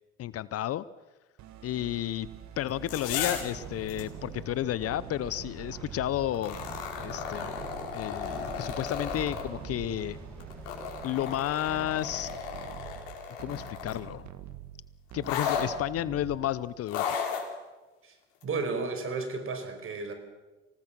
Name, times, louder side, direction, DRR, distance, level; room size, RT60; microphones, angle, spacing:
voice 1, 0.2-0.8 1.6-2.3 2.6-6.6 7.0-7.5 7.9-10.2 11.0-12.3 13.4-14.3 15.1-17.2, left 13 dB, 45° left, 18 dB, 0.7 m, -32 dB
sound 1, 1.4-16.8, right 10 dB, 55° right, 1.9 m, -45 dB
sound 2, 2.7-3.5 3.9-4.0 6.3-9.4 10.4-14.1 15.2-15.7 16.9-17.5 18.4-18.5, left 7 dB, 75° left, 4.5 m, -34 dB
sound 3, 2.9-11.7, left 1 dB, 5° left, 6.1 m, -48 dB
voice 2, 18.4-20.1, right 4 dB, 40° right, 7 dB, 5.0 m, -33 dB
26.0 x 18.5 x 6.0 m, 1.2 s
hypercardioid pair, 80°, 33 cm